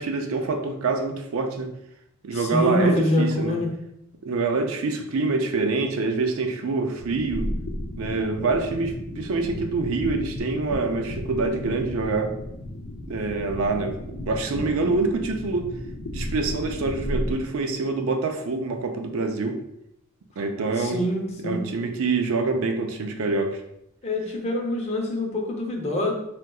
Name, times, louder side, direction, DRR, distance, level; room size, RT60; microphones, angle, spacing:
voice 1, 0.0-1.7 2.2-3.6 4.2-7.5 8.0-12.3 13.1-14.0 14.3-15.7 16.1-19.6 20.4-21.0 21.4-23.6, right 3 dB, 75° right, 5 dB, 0.4 m, -26 dB
voice 2, 2.3-3.7 20.8-21.6 24.0-26.1, left 1 dB, 30° left, 0 dB, 0.6 m, -25 dB
sound 1, 7.0-17.3, left 1 dB, 70° left, 0.5 m, -34 dB
3.5 x 2.7 x 2.3 m, 0.80 s
head